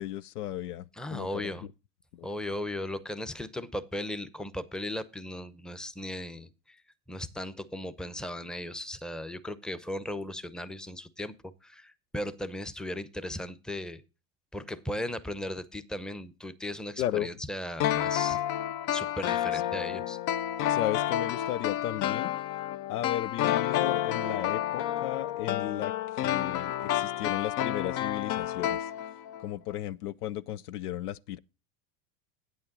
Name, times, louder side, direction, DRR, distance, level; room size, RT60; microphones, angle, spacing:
voice 1, 0.0-1.6 2.1-2.3 17.0-17.3 19.5-19.6 20.7-22.3 22.9-25.9 26.2-28.9 29.4-31.4, left 13 dB, 90° left, 0.6 m, -35 dB
voice 2, 1.0-1.7 2.2-6.8 7.1-11.3 11.6-14.0 14.5-18.4 18.9-20.2, left 1 dB, ahead, 0.7 m, -37 dB
sound 1, 17.8-29.4 29.7-29.8, left 12 dB, 45° left, 0.6 m, -30 dB
8.9 x 8.8 x 3.8 m
hypercardioid pair, 100°, 44 cm